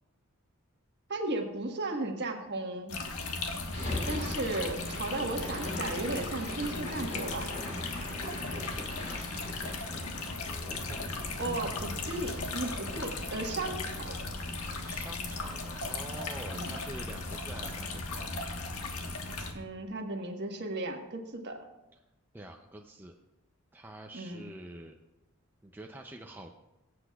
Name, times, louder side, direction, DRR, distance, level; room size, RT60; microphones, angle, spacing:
voice 1, 1.1-2.9 4.1-7.5 11.4-14.2 16.5-16.7 19.5-21.7 24.1-24.5, right 2 dB, 50° right, 3 dB, 1.3 m, -35 dB
sound 1, 2.9-19.5, left 3 dB, 90° left, 1.3 m, -37 dB
sound 2, 3.7-15.9, left 1 dB, 65° left, 4.2 m, -42 dB
voice 2, 8.3-9.8 10.4-11.8 14.9-18.3 22.3-23.2 23.7-25.0 25.6-26.5, right 1 dB, 10° right, 2 dB, 0.4 m, -47 dB
23.0 x 7.9 x 2.3 m, 0.95 s
head